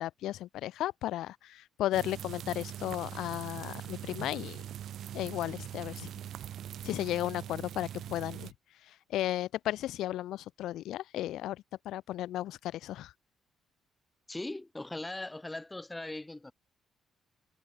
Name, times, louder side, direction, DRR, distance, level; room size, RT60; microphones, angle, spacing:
voice 1, 0.0-4.6 5.1-6.1 6.8-8.5 9.1-13.1, left 13 dB, 85° left, 0.4 m, -34 dB
sound 1, 1.9-8.5, right 10 dB, 70° right, 0.5 m, -42 dB
voice 2, 14.3-16.5, left 2 dB, 15° left, 0.3 m, -39 dB
cardioid pair, 90°, 0 cm